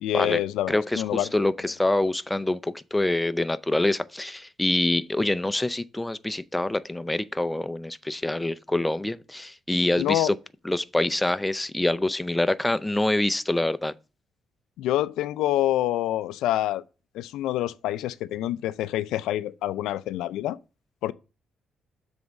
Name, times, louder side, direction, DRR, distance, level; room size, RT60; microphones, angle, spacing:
voice 1, 0.0-1.3 10.0-10.3 14.8-16.8 17.1-20.6 21.0-21.1, left 13 dB, 90° left, 0.4 m, -26 dB
voice 2, 0.7-10.4 10.7-13.9, left 1 dB, 10° left, 0.4 m, -25 dB
7.2 x 3.5 x 6.2 m
cardioid pair, 90°, 0 cm